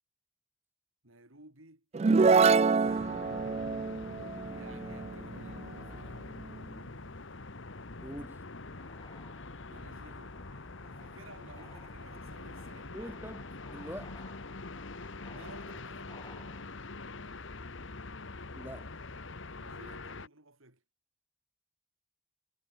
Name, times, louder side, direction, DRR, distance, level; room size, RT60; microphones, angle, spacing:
voice 1, 1.0-1.9 2.5-3.1 4.5-6.2 9.7-13.2 15.2-16.6 19.6-20.8, right 2 dB, 70° right, 4.7 m, -55 dB
sound 1, 1.9-5.6, right 4 dB, 30° right, 0.3 m, -26 dB
sound 2, 2.8-20.3, left 3 dB, 60° left, 1.4 m, -44 dB
voice 2, 8.0-8.4 12.9-13.4 13.7-14.2 18.5-18.9, equal, 10° right, 1.6 m, -43 dB
sound 3, 8.7-16.7, left 3 dB, 20° left, 7.3 m, -57 dB
head